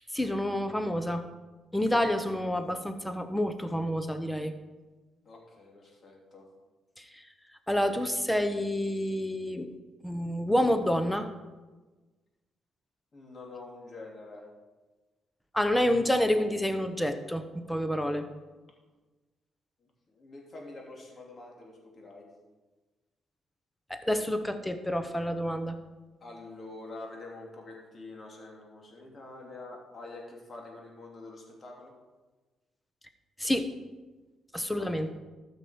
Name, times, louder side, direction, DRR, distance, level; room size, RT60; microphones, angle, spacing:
voice 1, 0.1-1.3 1.7-4.5 7.0-7.2 7.7-9.7 10.0-11.3 15.5-18.2 23.9-25.8 33.4-33.7 34.5-35.1, equal, 5° left, 8 dB, 1.0 m, -28 dB
voice 2, 5.2-6.5 13.1-14.5 19.8-22.3 26.2-31.9 34.7-35.1, left 2 dB, 40° left, -1 dB, 2.9 m, -46 dB
13.0 x 6.2 x 5.2 m, 1.2 s
cardioid pair, 90°, 0 cm